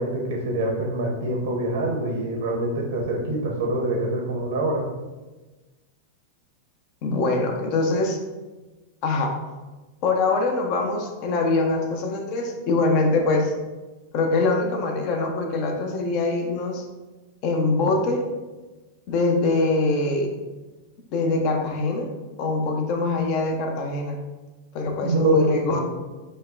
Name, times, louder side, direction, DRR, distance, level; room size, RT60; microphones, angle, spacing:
voice 1, 0.0-4.8 25.0-25.8, right 1 dB, 85° right, 0 dB, 0.9 m, -25 dB
voice 2, 7.0-8.2 9.0-9.4 10.0-13.5 14.1-16.8 17.4-18.2 19.1-20.3 21.1-22.1 22.4-24.2 24.7-25.8, left 3 dB, 50° left, 3 dB, 0.8 m, -23 dB
5.2 x 2.2 x 3.9 m, 1.2 s
supercardioid pair, 135°, 0 cm